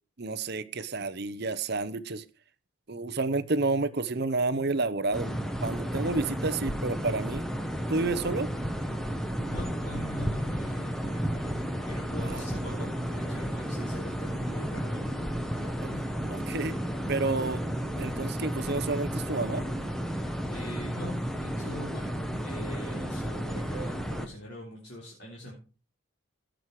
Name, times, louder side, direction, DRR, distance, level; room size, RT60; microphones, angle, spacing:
voice 1, 0.2-2.2 2.9-5.3 5.6-7.4 7.9-8.5 12.2-12.4 16.5-16.8 17.1-17.6 18.0-19.6, right 3 dB, 50° right, 15 dB, 0.8 m, -30 dB
sound 1, 5.1-24.3, equal, ahead, 1.1 m, -32 dB
voice 2, 9.5-11.6 11.8-16.0 20.2-20.3 20.5-22.2 22.4-25.5, left 1 dB, 50° left, -3 dB, 3.8 m, -42 dB
16.5 x 6.4 x 4.8 m, 0.35 s
head